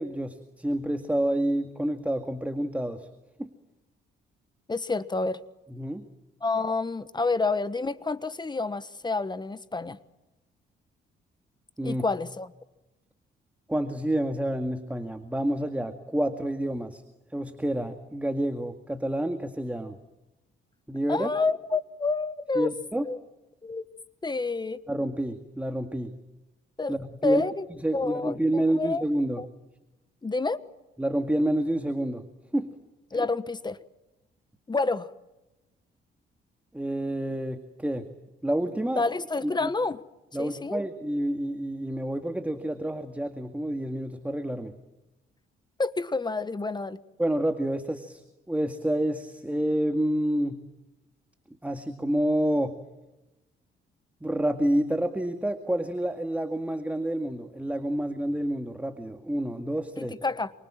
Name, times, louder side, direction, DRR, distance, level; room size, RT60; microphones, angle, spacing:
voice 1, 0.0-3.1 3.4-3.5 5.7-6.0 11.8-12.0 13.7-17.0 17.3-20.0 20.9-21.3 22.6-23.1 24.9-26.1 26.9-27.4 27.8-29.4 31.0-32.2 32.5-32.7 36.7-38.1 38.4-39.0 39.4-39.7 40.3-44.7 47.2-50.6 51.6-52.8 54.2-60.1, right 1 dB, 5° right, 7 dB, 2.1 m, -28 dB
voice 2, 4.7-5.4 6.4-10.0 11.8-12.5 21.1-22.7 23.0-23.2 23.6-23.8 24.2-24.8 26.8-27.6 27.9-29.0 29.4-29.5 30.2-30.6 33.1-33.8 34.7-35.1 38.9-40.0 40.4-40.8 45.8-47.0 60.0-60.5, left 3 dB, 20° left, 14 dB, 1.3 m, -28 dB
28.5 x 25.0 x 7.5 m, 1.0 s
cardioid pair, 90°, 20 cm